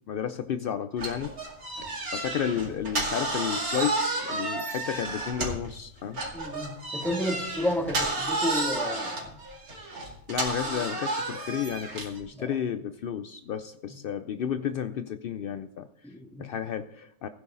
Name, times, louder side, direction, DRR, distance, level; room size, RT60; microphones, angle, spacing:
voice 1, 0.1-1.4 2.1-6.2 10.3-15.9 16.4-17.3, left 8 dB, 70° left, 11 dB, 0.5 m, -32 dB
sound 1, 1.0-5.7 6.1-12.2, right 2 dB, 85° right, 2.8 m, -31 dB
voice 2, 6.3-9.4 12.3-12.6 13.9-14.0 16.0-16.4, equal, ahead, -1 dB, 2.5 m, -32 dB
16.0 x 9.6 x 3.9 m, 0.77 s
omnidirectional pair, 1.5 m